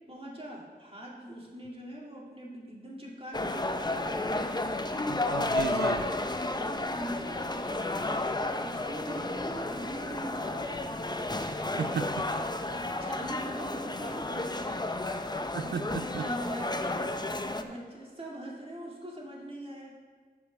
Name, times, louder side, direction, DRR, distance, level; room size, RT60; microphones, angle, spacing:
voice 1, 0.1-4.7 6.4-10.8 12.6-14.8 15.6-19.9, right 1 dB, 35° right, -3 dB, 2.5 m, -42 dB
sound 1, 3.3-17.6, left 2 dB, 25° left, 0.6 m, -32 dB
voice 2, 5.1-6.1 11.8-12.2 15.5-16.2, right 6 dB, 90° right, 10 dB, 0.4 m, -34 dB
9.1 x 5.8 x 6.6 m, 1.5 s
wide cardioid pair, 55°, 17 cm